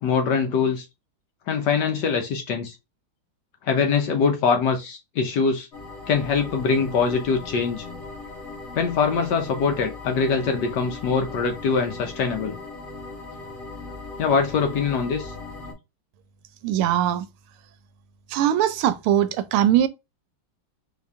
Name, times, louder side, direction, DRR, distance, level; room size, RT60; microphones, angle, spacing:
voice 1, 0.0-0.8 1.5-2.8 3.6-5.7 6.1-7.8 8.7-12.6 14.2-15.3, left 5 dB, 65° left, 1.2 m, -23 dB
sound 1, 5.7-15.7, left 3 dB, 35° left, 1.4 m, -38 dB
voice 2, 16.6-17.3 18.3-19.9, right 11 dB, 85° right, 1.5 m, -21 dB
4.1 x 2.8 x 3.4 m
omnidirectional pair, 2.3 m